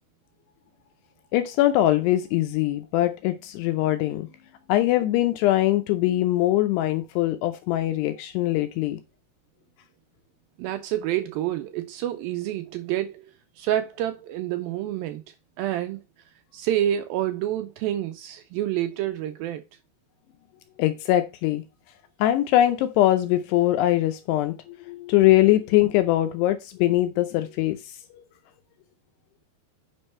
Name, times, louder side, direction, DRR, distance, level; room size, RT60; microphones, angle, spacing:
voice 1, 1.3-4.3 4.7-9.0 20.8-21.6 22.2-24.5 24.9-28.2, left 14 dB, 85° left, 2.7 m, -22 dB
voice 2, 10.6-19.6, right 12 dB, 85° right, 2.1 m, -28 dB
8.9 x 5.4 x 4.3 m
omnidirectional pair, 4.8 m